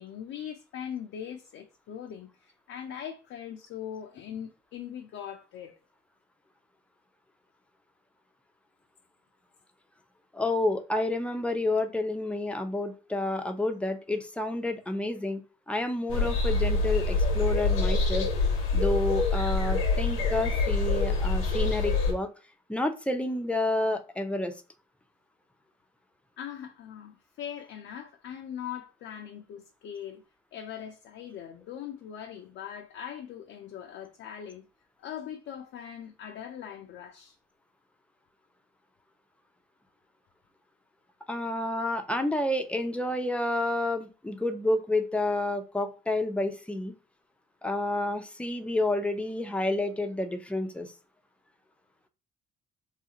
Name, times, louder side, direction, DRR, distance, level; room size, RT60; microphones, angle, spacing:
voice 1, 0.0-5.7 26.4-30.2 30.5-34.7 35.0-37.4, left 9 dB, 65° left, 0.5 m, -41 dB
voice 2, 10.3-15.4 15.7-18.3 18.7-22.3 22.7-24.5 41.3-46.9 47.6-50.9, left 2 dB, 5° left, 0.6 m, -29 dB
sound 1, 16.1-22.1, left 3 dB, 85° left, 0.8 m, -26 dB
3.0 x 2.4 x 2.8 m
supercardioid pair, 70°, 21 cm